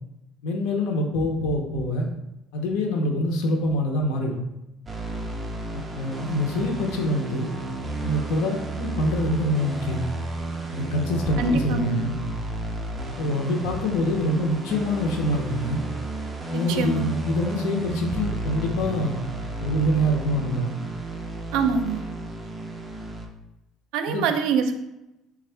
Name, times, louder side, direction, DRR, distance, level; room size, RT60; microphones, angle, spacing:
voice 1, 0.4-2.1 2.5-4.4 5.7-7.5 8.0-10.0 10.7-12.2 13.2-15.8 16.5-19.2 19.6-20.7 24.1-24.3, left 1 dB, 85° left, 2 dB, 0.7 m, -25 dB
sound 1, 4.9-23.3, right 2 dB, 15° right, 0.4 m, -33 dB
voice 2, 11.4-12.1 16.5-17.1 21.5-22.0 23.9-24.7, right 4 dB, 80° right, 7 dB, 0.4 m, -24 dB
4.3 x 2.4 x 3.3 m, 0.92 s
cardioid pair, 150°, 0 cm